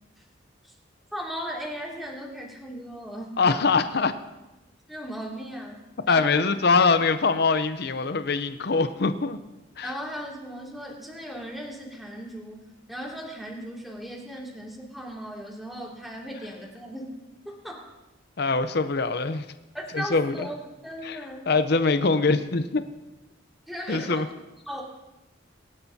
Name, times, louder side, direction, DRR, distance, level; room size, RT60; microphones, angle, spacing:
voice 1, 1.1-3.4 4.9-6.4 9.8-17.0 17.4-17.9 19.7-20.6 20.8-21.5 23.7-24.3 24.7-24.8, equal, ahead, -4 dB, 2.5 m, -37 dB
voice 2, 3.4-4.1 6.1-9.4 9.8-9.9 18.4-19.4 19.9-20.5 21.0-21.2 21.5-22.8 23.9-24.3, left 4 dB, 55° left, 10 dB, 0.7 m, -23 dB
23.5 x 11.5 x 2.8 m, 1.0 s
head